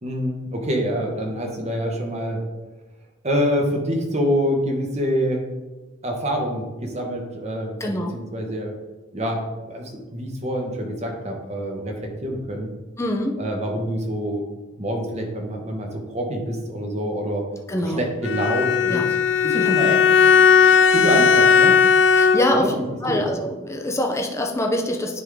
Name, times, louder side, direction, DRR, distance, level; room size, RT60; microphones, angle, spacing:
voice 1, 0.0-2.4 3.2-5.4 6.0-8.7 9.1-11.9 12.2-12.7 13.4-14.4 14.8-17.4 18.0-19.0 19.4-20.5 20.9-21.8 22.5-22.7 23.1-23.3, equal, 35° right, 1 dB, 1.1 m, -26 dB
voice 2, 7.8-8.2 13.0-13.4 17.7-18.1 18.9-19.1 19.6-19.7 22.1-22.8 23.0-25.2, left 1 dB, 15° left, 1 dB, 0.6 m, -24 dB
Bowed string instrument, 18.2-22.7, left 6 dB, 70° left, 0.4 m, -16 dB
9.8 x 3.6 x 3.6 m, 1.2 s
head